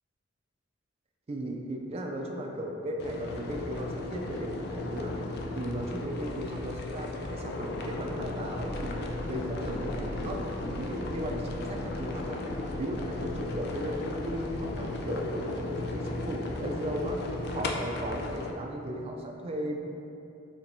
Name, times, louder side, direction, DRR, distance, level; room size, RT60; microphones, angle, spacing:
voice 1, 1.3-5.2 5.5-9.0 9.3-12.4 12.8-17.2 17.5-19.8, right 1 dB, 30° right, 1 dB, 0.3 m, -36 dB
sound 1, 3.0-18.5, left 2 dB, 55° left, 0.3 m, -35 dB
sound 2, 7.7-15.5, left 1 dB, 80° left, 1.1 m, -44 dB
4.3 x 2.9 x 2.6 m, 2.7 s
head